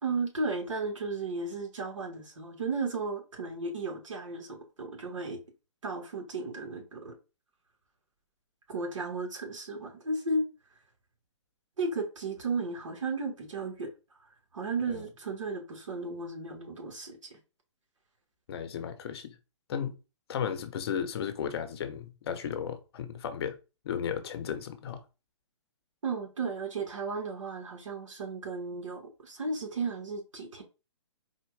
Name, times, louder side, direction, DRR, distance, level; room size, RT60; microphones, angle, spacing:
voice 1, 0.0-5.4 5.8-7.2 8.7-10.5 11.8-13.9 14.5-17.4 26.0-30.6, right 3 dB, 80° right, 1.9 m, -34 dB
voice 2, 18.5-19.3 19.7-20.0 20.3-23.6 23.8-25.0, left 8 dB, 55° left, 0.9 m, -34 dB
4.2 x 2.5 x 4.7 m
hypercardioid pair, 145°, 16 cm